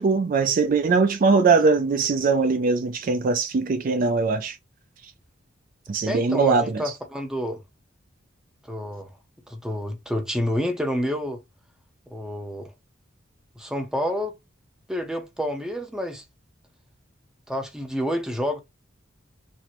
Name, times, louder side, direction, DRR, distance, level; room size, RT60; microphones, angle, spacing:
voice 1, 0.0-4.6 5.9-6.9, right 4 dB, 45° right, 0.4 m, -21 dB
voice 2, 6.1-7.6 8.7-9.1 9.5-11.4 12.1-12.7 13.6-14.3 14.9-16.2 17.5-18.6, equal, 5° right, 0.6 m, -28 dB
4.2 x 2.1 x 2.9 m
head